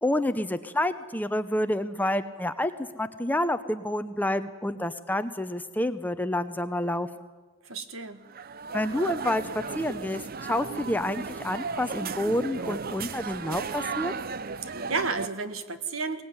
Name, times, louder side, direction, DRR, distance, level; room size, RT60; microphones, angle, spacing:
voice 1, 0.0-7.1 8.7-14.1, left 1 dB, 10° left, 10 dB, 0.7 m, -28 dB
voice 2, 7.6-8.2 14.6-16.2, right 4 dB, 70° right, 10 dB, 1.7 m, -32 dB
sound 1, 8.3-15.3, right 5 dB, 45° right, 0.7 m, -35 dB
22.5 x 19.0 x 9.6 m, 1.3 s
head